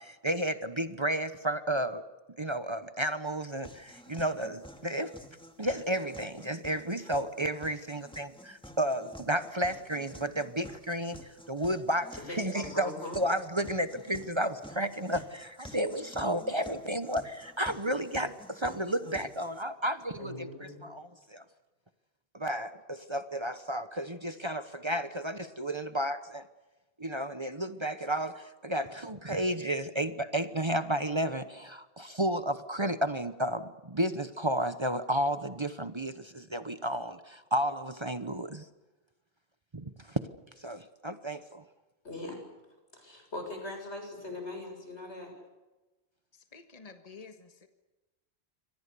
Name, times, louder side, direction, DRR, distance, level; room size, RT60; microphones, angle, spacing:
voice 1, 0.0-2.0 2.4-5.1 5.6-21.4 22.3-26.4 27.0-38.6 39.7-40.2 40.6-41.6, right 1 dB, 25° right, 11 dB, 1.0 m, -32 dB
sound 1, 3.6-19.6, equal, 5° left, 2.1 m, -51 dB
voice 2, 12.2-13.2 20.2-20.8 42.0-42.4 42.9-45.3, left 2 dB, 90° left, 4 dB, 7.6 m, -40 dB
voice 3, 46.3-47.7, left 4 dB, 35° left, 7 dB, 1.7 m, -50 dB
28.5 x 25.0 x 6.9 m, 1.1 s
omnidirectional pair, 1.1 m